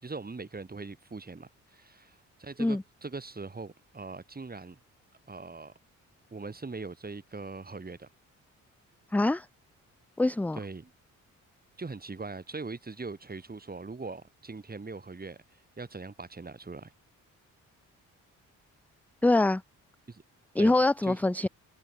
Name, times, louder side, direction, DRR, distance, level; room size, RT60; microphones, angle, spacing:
voice 1, 0.0-4.8 5.3-5.7 6.3-8.1 10.6-10.9 11.8-15.4 15.8-16.9 20.1-20.2 20.6-20.7 21.0-21.2, right 3 dB, 30° right, 6.1 m, -41 dB
voice 2, 9.1-9.5 10.2-10.6 19.2-19.6 20.6-21.5, left 2 dB, 5° left, 0.4 m, -24 dB
cardioid pair, 70°, 32 cm